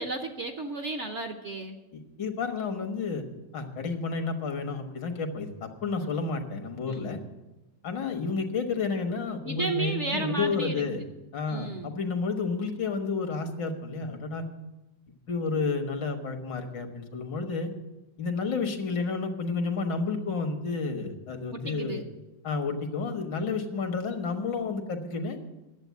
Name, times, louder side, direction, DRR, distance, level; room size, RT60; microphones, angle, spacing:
voice 1, 0.0-1.8 6.0-6.1 6.8-7.1 9.4-10.8 11.5-12.0 21.5-22.0, right 3 dB, 50° right, 6 dB, 0.9 m, -33 dB
voice 2, 1.9-3.2 3.5-7.2 7.8-11.0 11.3-14.5 15.3-17.7 18.2-22.0 22.4-25.4, left 4 dB, 75° left, 6 dB, 2.0 m, -31 dB
10.5 x 7.8 x 9.3 m, 1.0 s
omnidirectional pair, 2.0 m